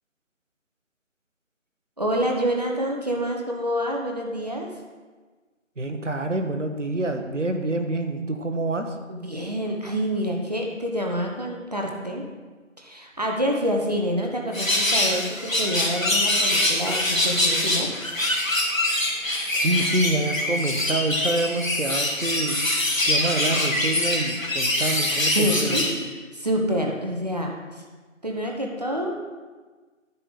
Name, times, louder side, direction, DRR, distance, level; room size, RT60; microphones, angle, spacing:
voice 1, 2.0-4.7 9.1-12.2 12.8-17.9 25.3-26.1 26.3-27.5 28.2-29.2, equal, 30° right, 0 dB, 1.0 m, -27 dB
voice 2, 5.8-8.9 19.5-22.6 23.0-25.8, right 2 dB, 65° right, 6 dB, 1.3 m, -27 dB
sound 1, 14.5-25.9, left 1 dB, 80° left, 2.5 m, -24 dB
10.0 x 5.5 x 6.8 m, 1.3 s
figure-of-eight pair, 160°, 39 cm